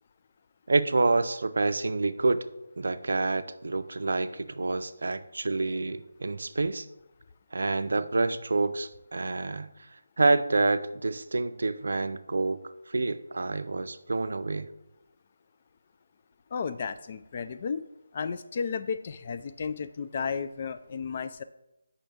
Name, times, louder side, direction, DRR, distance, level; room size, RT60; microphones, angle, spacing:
voice 1, 0.7-2.4 2.8-6.9 7.5-12.6 12.9-14.7, right 3 dB, 70° right, 12 dB, 0.4 m, -28 dB
voice 2, 16.5-17.8 18.1-21.4, left 5 dB, 40° left, 11 dB, 0.3 m, -33 dB
7.1 x 5.6 x 3.4 m, 0.90 s
figure-of-eight pair, 160°, 0 cm